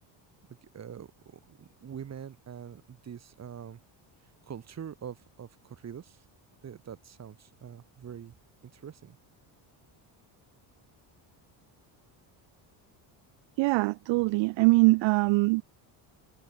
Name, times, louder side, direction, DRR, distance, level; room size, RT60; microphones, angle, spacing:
voice 1, 0.6-3.8 4.2-6.2 6.6-8.3 8.6-9.2, right 8 dB, 30° right, 3.2 m, -44 dB
voice 2, 13.6-15.6, right 23 dB, 65° right, 0.6 m, -23 dB
cardioid pair, 155°, 49 cm